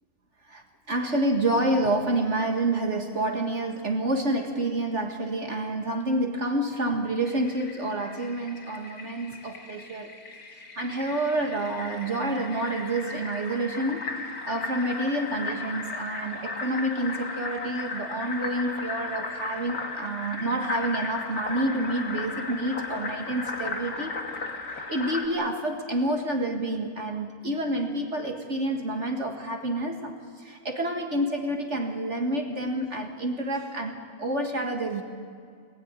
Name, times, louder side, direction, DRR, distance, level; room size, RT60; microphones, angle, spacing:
voice 1, 0.5-10.1 10.5-14.1 14.5-24.2 24.5-35.0, right 1 dB, 50° right, 3 dB, 2.1 m, -28 dB
Fill (with liquid), 7.2-25.3, left 3 dB, 80° left, 2.9 m, -36 dB
25.5 x 20.5 x 9.7 m, 2.2 s
omnidirectional pair, 1.5 m